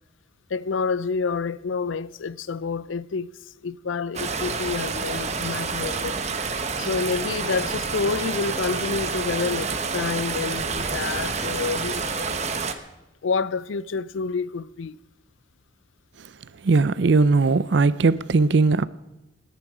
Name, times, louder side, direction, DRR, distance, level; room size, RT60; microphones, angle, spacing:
voice 1, 0.5-6.2 6.8-12.4 13.2-15.0, left 5 dB, 90° left, 0.5 m, -28 dB
sound 1, 4.1-12.7, right 4 dB, 35° right, 1.0 m, -28 dB
voice 2, 16.6-18.8, right 3 dB, 65° right, 0.5 m, -19 dB
28.5 x 10.5 x 5.0 m
head